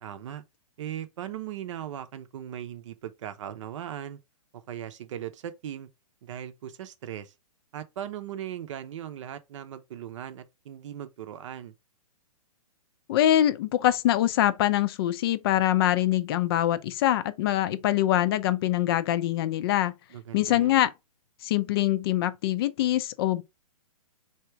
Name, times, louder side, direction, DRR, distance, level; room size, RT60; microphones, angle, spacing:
voice 1, 0.0-0.4 0.8-4.2 4.5-5.9 6.2-7.3 7.7-11.7 20.1-20.8, right 10 dB, 55° right, 0.7 m, -38 dB
voice 2, 13.1-19.9 20.3-20.9 21.4-23.4, left 13 dB, 40° left, 0.4 m, -24 dB
3.5 x 2.8 x 4.3 m
hypercardioid pair, 130°, 19 cm